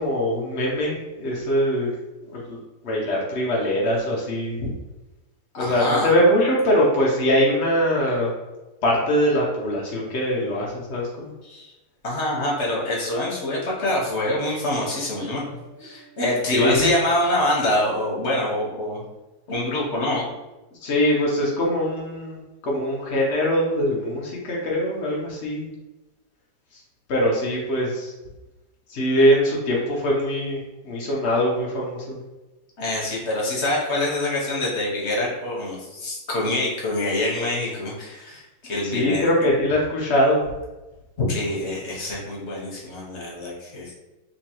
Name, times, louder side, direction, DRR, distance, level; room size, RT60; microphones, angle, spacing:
voice 1, 0.0-1.9 2.2-4.7 5.6-8.3 8.8-11.3 16.5-16.9 20.8-25.7 26.7-26.8 27.1-28.1 28.9-32.2 38.8-40.4, equal, 70° left, -4 dB, 0.6 m, -22 dB
voice 2, 5.5-6.1 11.4-11.7 12.0-19.0 19.5-20.3 32.8-39.2 41.2-43.9, left 1 dB, 45° left, -4 dB, 1.0 m, -25 dB
sound 1, 14.7-17.4, right 5 dB, 70° right, 1.4 m, -47 dB
3.5 x 2.9 x 2.9 m, 1.1 s
omnidirectional pair, 2.1 m